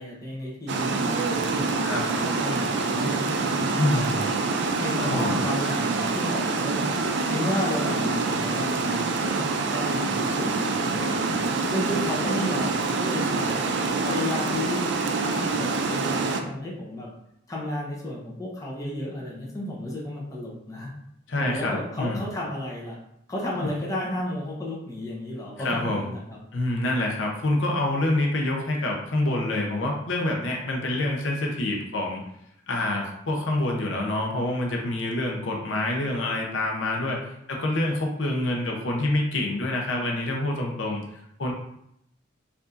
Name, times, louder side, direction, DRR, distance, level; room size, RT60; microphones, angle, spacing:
voice 1, 0.0-4.4 4.8-6.9 7.3-11.4 11.7-13.6 14.0-17.1 17.5-20.9 21.3-23.0 23.3-26.4, left 1 dB, 15° left, -4 dB, 0.7 m, -33 dB
Water, 0.7-16.4, right 3 dB, 60° right, 0.4 m, -26 dB
voice 2, 3.8-4.2 5.0-5.4 21.3-22.2 25.6-26.1 26.5-32.2 32.7-41.5, left 1 dB, 70° left, 0 dB, 0.7 m, -27 dB
4.6 x 2.6 x 2.5 m, 0.76 s
head